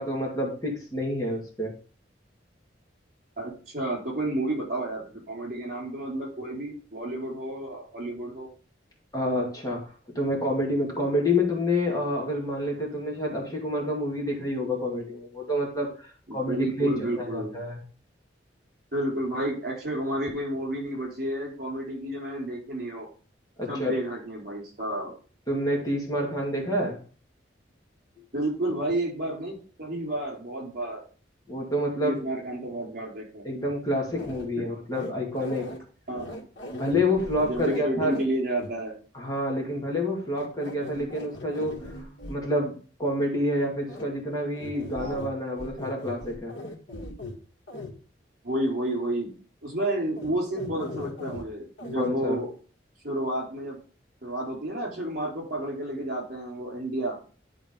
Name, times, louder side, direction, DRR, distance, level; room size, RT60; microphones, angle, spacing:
voice 1, 0.0-1.7 9.1-9.8 10.2-17.8 23.6-24.0 25.5-27.0 31.5-32.2 33.4-35.7 36.7-38.2 39.1-42.7 43.0-46.5 52.0-52.4, left 1 dB, 20° left, -2 dB, 2.1 m, -28 dB
voice 2, 3.4-8.5 16.3-17.5 18.9-23.1 23.7-25.1 28.3-31.0 32.0-33.4 34.6-34.7 36.1-36.3 37.4-38.9 44.9-45.2 48.4-49.3 49.6-52.5 53.0-53.8 54.2-57.2, right 1 dB, 50° right, -1 dB, 4.4 m, -31 dB
sound 1, 34.2-34.5 34.9-35.8 36.1-38.2 38.6-38.7 40.3-42.4 43.9-44.0 44.5-45.3 45.6-47.4 47.7-47.9 50.2-50.3 50.6-51.4 51.8-52.1, left 2 dB, 90° left, 2.0 m, -39 dB
11.5 x 4.0 x 5.2 m, 0.39 s
head